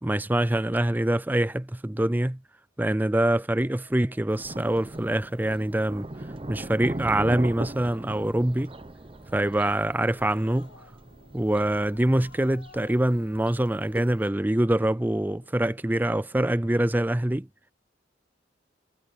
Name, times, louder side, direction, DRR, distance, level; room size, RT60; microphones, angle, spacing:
voice 1, 0.0-2.4 2.8-6.1 6.5-8.7 9.3-10.7 11.3-17.5, right 1 dB, 10° right, 0.4 m, -25 dB
Trumpet, 3.6-10.9, left 1 dB, 10° left, 6.2 m, -63 dB
Thunder, 4.3-14.3, right 1 dB, 30° right, 0.8 m, -39 dB
Growling, 9.9-16.4, left 4 dB, 70° left, 1.6 m, -55 dB
head